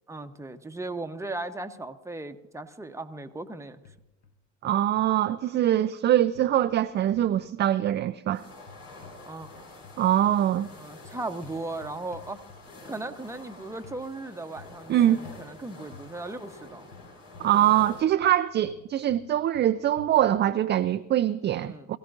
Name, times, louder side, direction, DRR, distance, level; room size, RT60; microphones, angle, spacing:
voice 1, 0.1-3.8 9.3-9.5 10.7-12.4 12.8-16.9 21.6-21.9, right 2 dB, 10° right, 7 dB, 1.0 m, -37 dB
sound 1, 3.8-4.3 4.6-5.1 6.3-7.4 8.6-9.6 9.8-12.9 13.8-14.0 14.6-14.9 15.2-15.5 15.9-16.1 16.9-18.4 18.6-20.6, left 5 dB, 45° left, 1.4 m, -50 dB
voice 2, 4.6-8.4 10.0-10.7 14.9-15.2 17.4-22.0, right 12 dB, 30° right, 9 dB, 0.5 m, -23 dB
sound 2, 8.3-18.0, left 2 dB, 75° left, 4.7 m, -48 dB
21.5 x 16.0 x 2.6 m, 0.97 s
hypercardioid pair, 80°, 36 cm